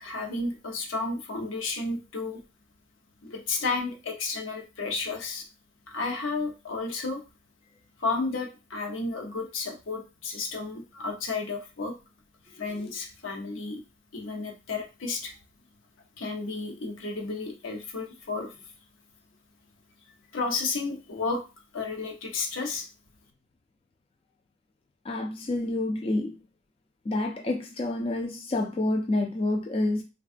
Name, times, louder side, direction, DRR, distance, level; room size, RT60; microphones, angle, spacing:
voice 1, 0.0-2.4 3.2-5.5 5.9-7.2 8.0-11.9 12.5-13.8 14.1-15.3 16.2-18.5 20.3-21.4 21.7-22.9, left 3 dB, 85° left, 0.7 m, -32 dB
voice 2, 25.0-26.4 27.1-30.0, left 2 dB, 30° left, 0.3 m, -28 dB
3.5 x 2.2 x 2.4 m
head